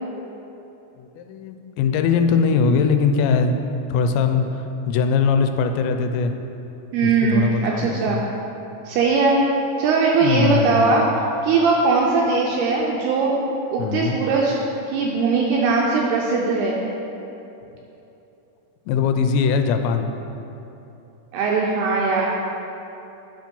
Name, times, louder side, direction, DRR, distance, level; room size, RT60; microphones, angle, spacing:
voice 1, 1.0-3.6 3.9-6.3 7.0-8.2 10.2-10.9 13.8-14.2 18.9-20.1, left 5 dB, 85° left, 7 dB, 2.7 m, -21 dB
voice 2, 6.9-8.2 8.9-9.5 9.8-11.0 11.4-13.4 13.7-14.6 14.9-16.8 21.3-22.3, right 4 dB, 80° right, -2 dB, 2.3 m, -20 dB
10.5 x 5.2 x 5.3 m, 2.9 s
omnidirectional pair, 5.3 m